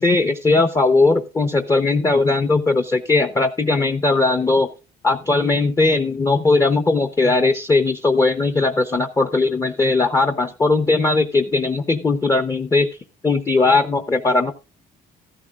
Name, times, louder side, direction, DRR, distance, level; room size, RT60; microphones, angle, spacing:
voice 1, 0.0-4.7 5.0-12.9 13.2-14.5, left 3 dB, 20° left, 9 dB, 0.7 m, -18 dB
14.0 x 12.5 x 2.4 m, 0.30 s
cardioid pair, 110°, 17 cm